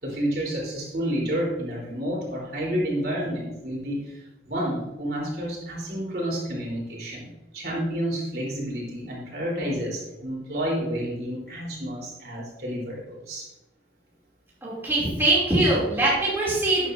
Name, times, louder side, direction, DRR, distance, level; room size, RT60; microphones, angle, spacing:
voice 1, 0.0-13.5, equal, 60° right, -4 dB, 3.8 m, -30 dB
voice 2, 14.6-16.9, right 2 dB, 15° right, -7 dB, 2.9 m, -22 dB
12.5 x 9.2 x 2.7 m, 0.98 s
head